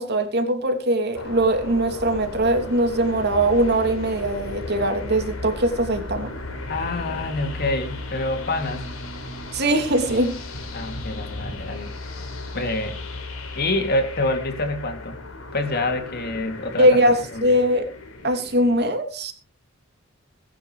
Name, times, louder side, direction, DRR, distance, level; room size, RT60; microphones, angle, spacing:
voice 1, 0.0-6.3 9.5-10.3 16.8-17.9 18.2-19.3, right 1 dB, 50° right, 5 dB, 3.1 m, -21 dB
sound 1, 1.1-18.8, left 2 dB, 85° left, 4.3 m, -35 dB
voice 2, 6.7-8.9 10.7-11.9 12.5-13.0 13.6-15.2 15.5-16.9 17.3-17.5, left 2 dB, 50° left, 6 dB, 3.1 m, -26 dB
21.0 x 11.0 x 3.4 m, 0.36 s
head